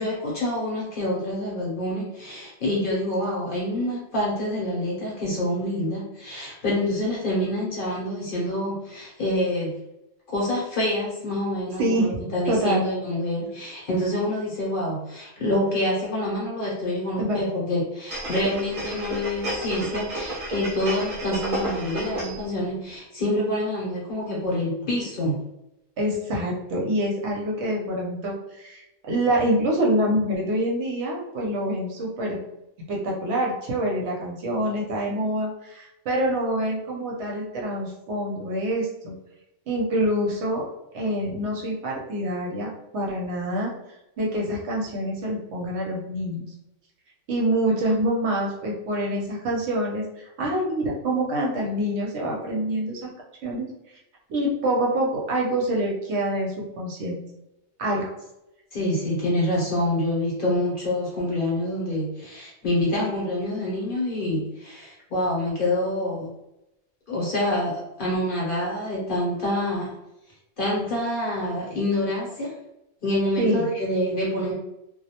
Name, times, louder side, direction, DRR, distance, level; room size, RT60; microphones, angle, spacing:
voice 1, 0.0-9.7 10.3-25.4 58.7-66.3 67.1-69.9 70.6-72.5 73.0-74.5, left 1 dB, 50° left, -4 dB, 0.8 m, -26 dB
voice 2, 11.8-12.1 12.5-12.8 17.2-17.4 26.0-32.4 32.9-39.1 39.7-40.6 40.9-43.7 44.2-46.5 47.3-53.1 53.4-53.7 54.3-57.2 57.8-58.1 73.4-73.7, right 1 dB, 65° right, -2 dB, 0.8 m, -26 dB
sound 1, 18.1-22.5 22.9-23.0, right 2 dB, 35° right, 0.6 m, -32 dB
2.2 x 2.0 x 2.8 m, 0.90 s
omnidirectional pair, 1.3 m